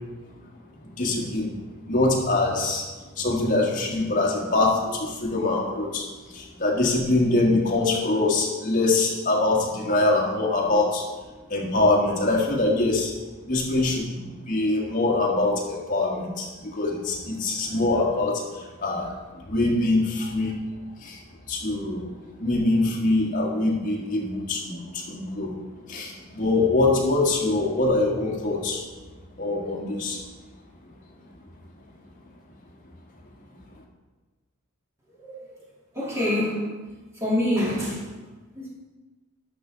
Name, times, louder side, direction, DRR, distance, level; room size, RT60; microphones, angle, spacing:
voice 1, 0.8-1.5 1.8-2.9 3.2-11.1 11.5-13.1 13.4-20.6 21.0-21.2 21.5-22.1 22.4-25.6 25.9-28.9 29.4-30.2, left 2 dB, 40° left, -2 dB, 1.7 m, -24 dB
voice 2, 35.9-36.8 37.2-38.0 38.6-38.7, left 1 dB, 15° right, -6 dB, 2.2 m, -25 dB
12.0 x 5.9 x 3.9 m, 1.2 s
head